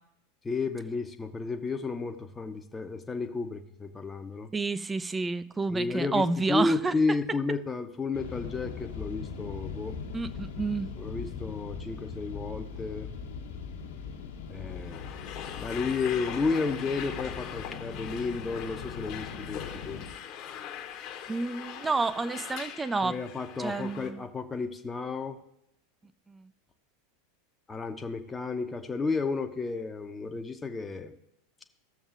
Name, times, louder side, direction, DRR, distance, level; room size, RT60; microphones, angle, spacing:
voice 1, 0.4-4.5 5.7-10.0 11.0-13.1 14.5-15.1 15.6-20.0 23.0-25.4 27.7-31.2, left 4 dB, 15° left, 5 dB, 0.7 m, -32 dB
voice 2, 4.5-6.9 10.1-10.9 21.3-23.2 23.6-24.2 26.3-26.5, right 3 dB, 15° right, 14 dB, 0.4 m, -30 dB
sound 1, 8.1-20.1, left 6 dB, 70° left, 1.2 m, -40 dB
sound 2, 14.6-24.1, left 9 dB, 45° left, 1.0 m, -41 dB
15.5 x 7.0 x 2.5 m, 0.77 s
figure-of-eight pair, 85°, 0 cm